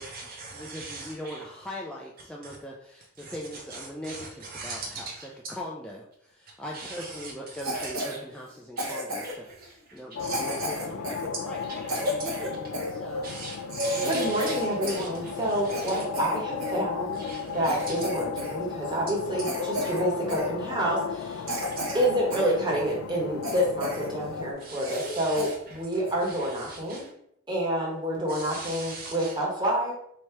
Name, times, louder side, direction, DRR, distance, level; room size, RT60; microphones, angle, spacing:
voice 1, 0.0-1.4 2.4-2.6 3.2-5.3 6.7-8.2 8.8-8.9 9.2-10.0 11.6-11.8 12.3-12.4 13.2-16.1 17.1-18.1 21.7-21.8 24.6-25.8 26.2-27.1 28.3-29.4, right 3 dB, 45° right, 0.5 m, -41 dB
voice 2, 0.5-5.1 5.5-13.3 13.9-14.3, equal, 5° left, 0.4 m, -40 dB
Cough, 7.6-8.2 8.8-9.5 10.2-12.9 13.4-13.5 13.7-15.1 15.4-16.8 17.3-17.4 17.6-18.6 18.8-19.0 19.4-20.0 20.3-20.5 21.0-21.1 21.5-22.5 22.9-23.0 23.4-24.1 24.4-24.5 24.8-25.1 25.4-25.5 26.0-26.3, equal, 75° right, 1.1 m, -32 dB
sound 1, 10.1-24.5, left 6 dB, 70° left, 0.3 m, -35 dB
voice 3, 14.0-17.2 17.5-21.4 21.9-27.0 27.5-29.9, right 1 dB, 20° right, 1.3 m, -28 dB
3.2 x 2.8 x 4.5 m
head